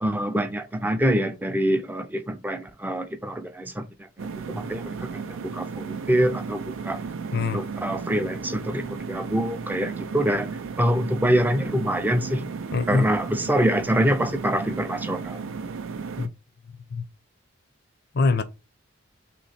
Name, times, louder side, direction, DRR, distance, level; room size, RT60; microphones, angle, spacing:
voice 1, 0.0-7.0 7.4-10.5 10.8-12.4 12.9-15.4, equal, 10° right, 0.4 m, -25 dB
sound 1, 4.2-16.3, right 5 dB, 85° right, 0.4 m, -34 dB
voice 2, 7.3-7.6 12.7-13.1 16.2-16.3 16.9-17.0 18.1-18.4, left 3 dB, 55° left, 0.5 m, -23 dB
3.0 x 3.0 x 4.1 m
head